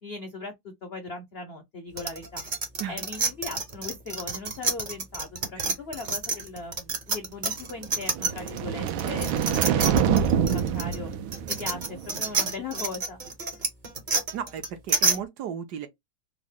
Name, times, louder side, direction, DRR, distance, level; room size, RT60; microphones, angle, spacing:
voice 1, 0.0-2.4 2.9-11.1 11.5-13.2, left 3 dB, 70° left, 0.5 m, -39 dB
sound 1, 2.0-8.6 8.9-15.2, right 4 dB, 45° right, 0.6 m, -28 dB
sound 2, 8.0-12.3, right 8 dB, 85° right, 1.4 m, -26 dB
voice 2, 14.3-15.9, right 8 dB, 70° right, 1.1 m, -35 dB
3.6 x 2.1 x 3.5 m
omnidirectional pair, 2.1 m